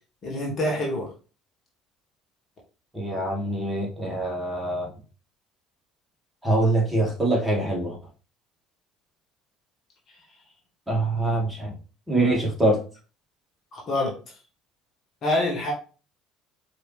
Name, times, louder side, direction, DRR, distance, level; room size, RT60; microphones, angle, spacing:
voice 1, 0.2-1.1 13.7-14.1 15.2-15.7, left 1 dB, 45° left, -2 dB, 1.5 m, -26 dB
voice 2, 2.9-4.9 6.4-7.9 10.9-11.7 12.1-12.8, right 2 dB, 5° right, -4 dB, 2.4 m, -24 dB
4.7 x 3.1 x 3.3 m, 0.36 s
figure-of-eight pair, 60°, 0 cm